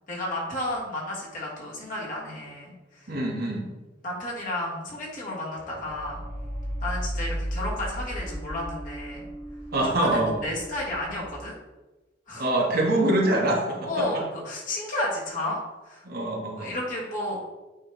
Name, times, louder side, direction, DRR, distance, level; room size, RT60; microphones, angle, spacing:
voice 1, 0.1-3.1 4.0-6.2 6.8-9.3 10.0-11.6 12.3-12.5 13.8-16.0 16.6-17.4, left 1 dB, 45° left, -4 dB, 1.8 m, -32 dB
voice 2, 3.1-3.7 9.7-10.4 12.4-14.2 16.0-16.7, right 1 dB, 55° right, -1 dB, 1.2 m, -25 dB
sound 1, 5.5-11.3, equal, 10° left, 1.4 m, -35 dB
8.7 x 3.2 x 3.4 m, 1.1 s
head